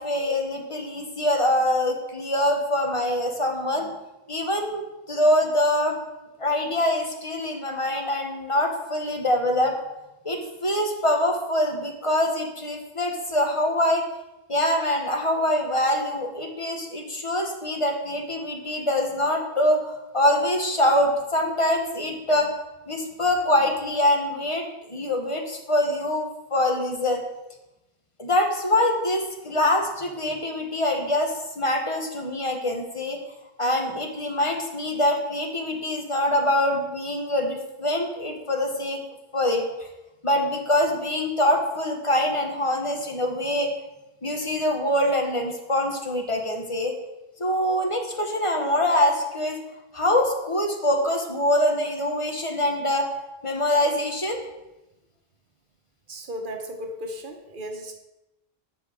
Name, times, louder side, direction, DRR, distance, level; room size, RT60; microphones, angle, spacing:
voice 1, 0.0-3.9 4.3-4.8 5.1-6.0 6.4-9.7 10.2-14.0 14.5-22.5 22.9-27.2 28.2-33.2 33.6-39.0 39.3-39.9 40.2-43.7 44.2-47.0 47.4-49.6 49.9-53.1 53.4-54.4, left 1 dB, 30° left, 3 dB, 1.0 m, -24 dB
voice 2, 56.1-58.0, equal, 55° right, 5 dB, 1.1 m, -35 dB
7.3 x 5.5 x 4.9 m, 0.96 s
omnidirectional pair, 1.0 m